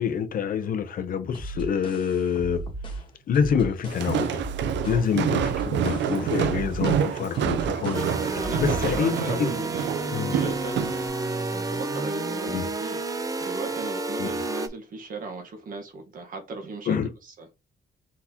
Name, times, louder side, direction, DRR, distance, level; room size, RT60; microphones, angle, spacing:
voice 1, 0.0-2.6 3.3-4.4 4.8-9.5 10.1-10.4 12.5-12.6 14.2-14.3 16.9-17.1, left 7 dB, 50° left, 0.6 m, -27 dB
sound 1, 1.3-9.2, right 2 dB, 25° left, 1.3 m, -37 dB
Walk footsteps, 3.9-11.1, right 9 dB, 85° right, 0.5 m, -28 dB
sound 2, 7.9-14.7, right 2 dB, 20° right, 0.4 m, -30 dB
voice 2, 8.4-10.8 11.5-13.0 13.4-17.0 17.2-17.5, right 3 dB, 50° right, 1.2 m, -37 dB
4.1 x 4.1 x 2.8 m
cardioid pair, 170°, 19 cm